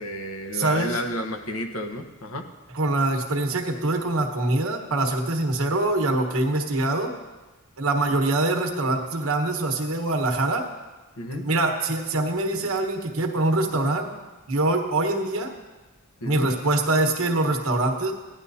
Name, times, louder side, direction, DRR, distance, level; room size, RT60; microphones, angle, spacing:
voice 1, 0.0-2.5 11.2-11.4 16.2-16.5, left 1 dB, 75° left, 5 dB, 1.1 m, -31 dB
voice 2, 0.5-1.0 2.7-7.1 7.8-10.7 11.3-14.1 14.5-15.5 16.2-18.1, right 2 dB, 75° right, 3 dB, 1.3 m, -24 dB
16.0 x 10.5 x 2.7 m, 1.2 s
head